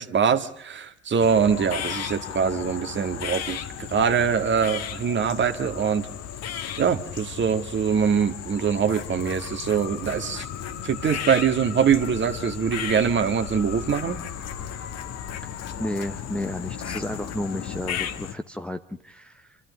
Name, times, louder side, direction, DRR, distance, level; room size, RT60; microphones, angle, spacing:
voice 1, 0.0-6.1 6.8-10.5 10.8-14.2, right 7 dB, 35° right, 9 dB, 1.8 m, -23 dB
sound 1, 1.2-18.3, left 9 dB, 50° left, 1.5 m, -35 dB
voice 2, 15.8-19.6, left 1 dB, 5° left, 7 dB, 0.9 m, -32 dB
26.0 x 13.5 x 9.4 m, 0.75 s
hypercardioid pair, 65°, 33 cm